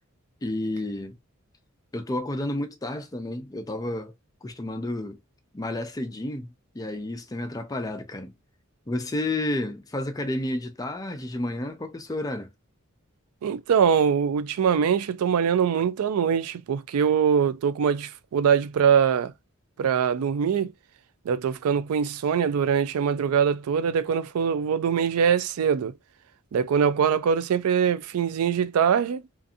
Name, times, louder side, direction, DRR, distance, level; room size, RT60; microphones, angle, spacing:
voice 1, 0.4-1.2 1.9-4.1 4.4-5.2 5.5-8.3 8.9-12.5, left 1 dB, 15° left, 0.4 m, -31 dB
voice 2, 13.4-19.3 19.8-20.7 21.3-25.9 26.5-29.2, right 7 dB, 75° right, 0.3 m, -23 dB
2.6 x 2.5 x 2.3 m
head